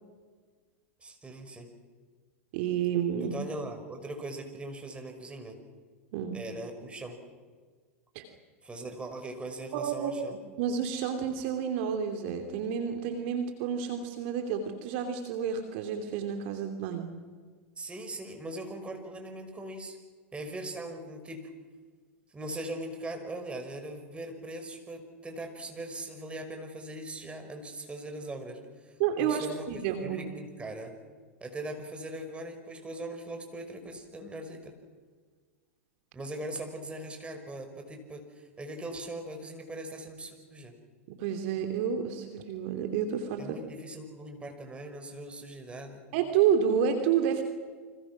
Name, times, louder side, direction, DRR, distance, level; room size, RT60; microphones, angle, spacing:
voice 1, 1.0-1.7 3.2-5.6 6.3-7.2 8.6-10.3 17.8-20.0 20.3-21.5 22.3-30.9 31.4-34.7 36.1-40.7 43.4-46.0, right 1 dB, 15° right, 4 dB, 6.0 m, -40 dB
voice 2, 2.5-3.4 6.1-6.4 8.1-8.2 9.7-10.1 10.6-17.1 29.0-30.2 41.1-43.6 46.1-47.4, right 8 dB, 55° right, 5 dB, 2.9 m, -30 dB
30.0 x 26.0 x 6.2 m, 1.5 s
hypercardioid pair, 95°, 7 cm